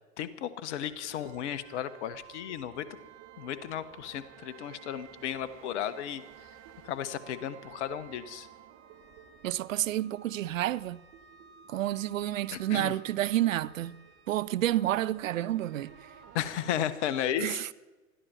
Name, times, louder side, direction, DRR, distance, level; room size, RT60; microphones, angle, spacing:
voice 1, 0.2-2.8 3.4-6.2 6.8-8.5 12.5-12.9 16.3-17.6, left 10 dB, 55° left, 1.3 m, -34 dB
sound 1, 0.8-16.9, right 8 dB, 45° right, 2.2 m, -54 dB
voice 2, 9.4-11.0 11.7-14.0 14.3-15.9 17.4-17.7, right 13 dB, 70° right, 0.6 m, -29 dB
20.5 x 13.5 x 4.4 m
figure-of-eight pair, 95°, 41 cm